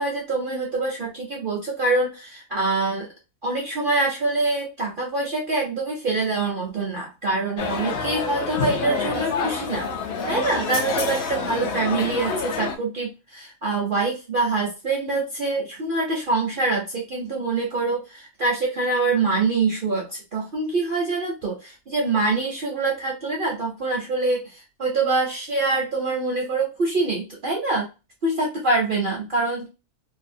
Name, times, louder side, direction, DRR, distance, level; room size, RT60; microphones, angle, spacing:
voice 1, 0.0-3.1 3.4-9.9 10.3-27.9 28.2-29.7, right 3 dB, 60° right, -1 dB, 0.5 m, -25 dB
sound 1, 7.6-12.8, left 5 dB, 65° left, 0.6 m, -27 dB
2.7 x 2.2 x 2.6 m, 0.29 s
omnidirectional pair, 1.5 m